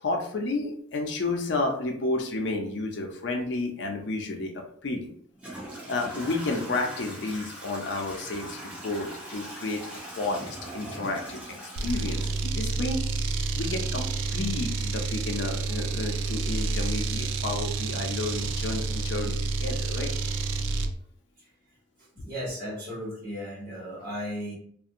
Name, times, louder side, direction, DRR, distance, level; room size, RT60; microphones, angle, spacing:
voice 1, 0.0-5.1 5.9-9.9 10.1-13.0 13.5-20.1, left 2 dB, 70° left, 2 dB, 0.5 m, -31 dB
Toilet flush / Trickle dribble, 4.6-4.7 5.3-13.1, right 1 dB, 5° right, 0.6 m, -41 dB
sound 1, 11.8-21.0, right 3 dB, 85° right, 0.3 m, -29 dB
voice 2, 22.1-24.5, equal, 45° right, -6 dB, 1.2 m, -35 dB
2.5 x 2.1 x 2.6 m, 0.62 s
head